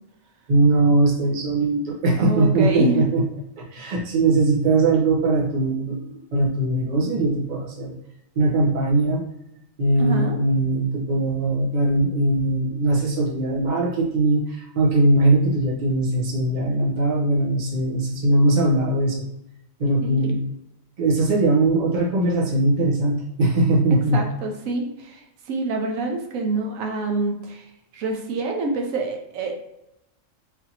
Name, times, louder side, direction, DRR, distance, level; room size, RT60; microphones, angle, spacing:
voice 1, 0.5-3.2 3.6-8.0 8.4-9.2 9.8-19.2 19.8-20.4 21.0-24.2, right 2 dB, 40° right, -3 dB, 0.9 m, -20 dB
voice 2, 2.2-3.1 10.0-10.4 20.0-20.3 24.1-27.7 27.9-29.5, right 3 dB, 85° right, 2 dB, 1.1 m, -26 dB
4.0 x 2.8 x 2.8 m, 0.85 s
omnidirectional pair, 1.4 m